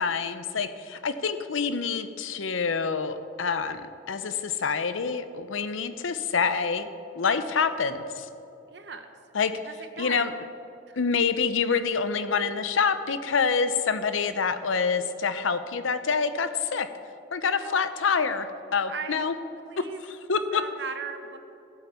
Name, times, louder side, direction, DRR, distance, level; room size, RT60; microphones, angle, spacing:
voice 1, 0.0-6.9 7.2-8.3 9.3-9.5 10.0-10.3 11.0-16.9 17.3-19.3 19.8-20.7, left 5 dB, 90° left, 11 dB, 0.6 m, -27 dB
voice 2, 8.7-9.1 9.6-10.3 10.9-11.0 17.5-17.9 18.9-19.1 19.6-20.0 20.5-21.4, right 5 dB, 60° right, 7 dB, 0.9 m, -38 dB
14.5 x 8.1 x 4.4 m, 2.9 s
head